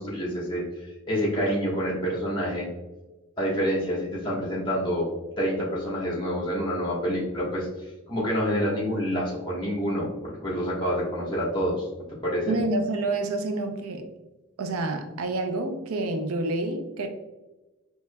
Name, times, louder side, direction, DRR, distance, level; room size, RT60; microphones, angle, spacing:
voice 1, 0.0-2.7 3.4-5.1 5.4-7.7 8.1-11.9 12.2-12.5, equal, 20° left, -5 dB, 1.3 m, -27 dB
voice 2, 12.5-14.1 14.6-17.1, right 2 dB, 85° right, 7 dB, 0.5 m, -28 dB
4.5 x 3.0 x 2.2 m, 1.1 s
head